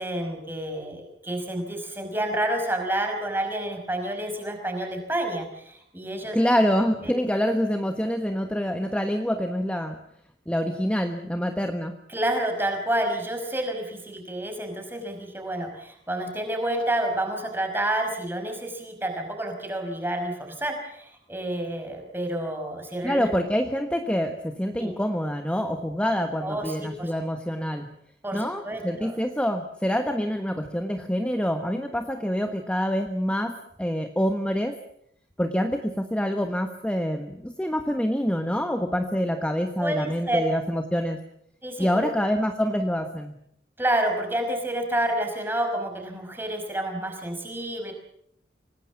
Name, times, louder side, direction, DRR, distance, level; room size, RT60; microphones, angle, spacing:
voice 1, 0.0-6.4 7.0-7.1 12.1-23.3 24.8-25.0 26.4-27.1 28.2-29.2 39.8-40.4 41.6-42.1 43.8-47.9, right 1 dB, 10° right, 3 dB, 5.4 m, -29 dB
voice 2, 6.3-10.0 10.5-11.9 23.0-27.9 28.3-34.8 35.4-41.2 41.8-43.3, equal, 5° left, 6 dB, 1.3 m, -26 dB
25.5 x 19.0 x 7.3 m, 0.70 s
head